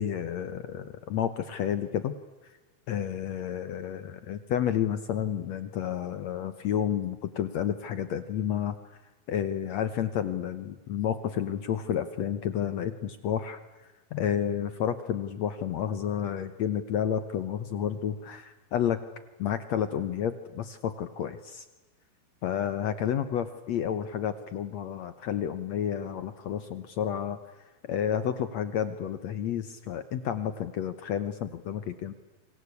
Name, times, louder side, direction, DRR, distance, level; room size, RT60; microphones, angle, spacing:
voice 1, 0.0-2.1 2.9-8.7 9.3-13.6 14.1-19.0 19.4-21.6 22.4-27.4 27.9-32.1, left 9 dB, 70° left, 12 dB, 1.7 m, -30 dB
28.5 x 25.0 x 8.3 m, 1.2 s
omnidirectional pair, 4.4 m